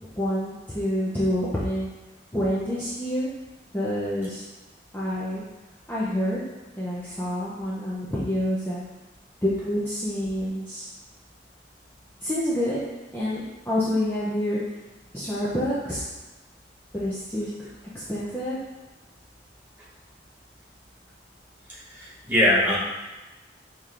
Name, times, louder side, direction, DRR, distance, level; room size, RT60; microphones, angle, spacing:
voice 1, 0.2-1.9 2.3-3.3 3.7-4.4 4.9-5.4 5.9-6.4 6.8-8.8 9.4-10.9 12.2-12.8 13.1-14.6 15.1-16.0 16.9-17.5 17.9-18.6, equal, 10° left, -9 dB, 0.5 m, -27 dB
voice 2, 21.9-22.8, left 1 dB, 10° right, -8 dB, 1.0 m, -21 dB
5.0 x 2.9 x 2.4 m, 1.1 s
head